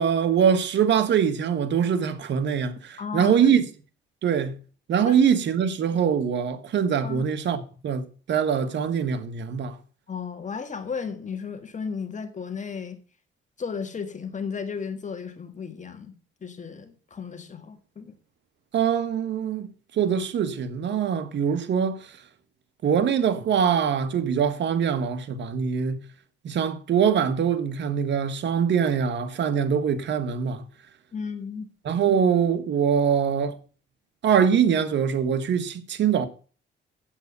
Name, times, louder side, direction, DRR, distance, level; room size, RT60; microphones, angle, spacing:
voice 1, 0.0-3.6 4.2-4.6 4.9-9.7 18.7-19.7 19.9-22.0 22.8-26.0 26.4-30.6 31.8-33.5 34.2-36.3, right 7 dB, 65° right, 1.5 m, -23 dB
voice 2, 3.0-3.5 5.1-5.2 7.0-7.3 10.1-13.0 13.6-16.1 16.4-18.1 31.1-31.7, left 6 dB, 40° left, 1.7 m, -34 dB
8.2 x 8.0 x 6.8 m
cardioid pair, 90°, 20 cm